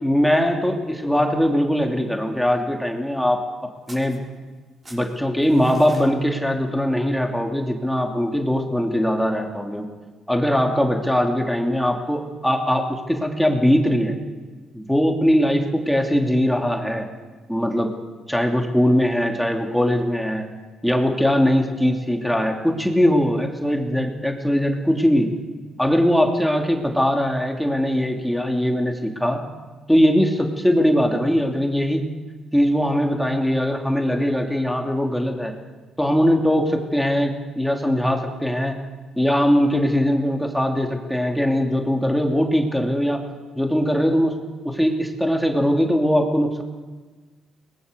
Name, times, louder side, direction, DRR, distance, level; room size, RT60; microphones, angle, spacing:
voice 1, 0.0-3.4 3.9-4.2 4.9-9.9 10.3-14.1 14.7-17.1 17.5-17.9 18.3-20.5 20.8-25.3 25.8-29.4 29.9-32.0 32.5-35.5 36.0-38.8 39.2-43.2 43.6-44.3 44.6-46.6, equal, ahead, 2 dB, 2.8 m, -21 dB
sound 1, 3.9-4.6 4.8-6.1, right 1 dB, 25° right, 6.4 m, -45 dB
22.5 x 20.0 x 6.9 m, 1.3 s
cardioid pair, 90°, 0 cm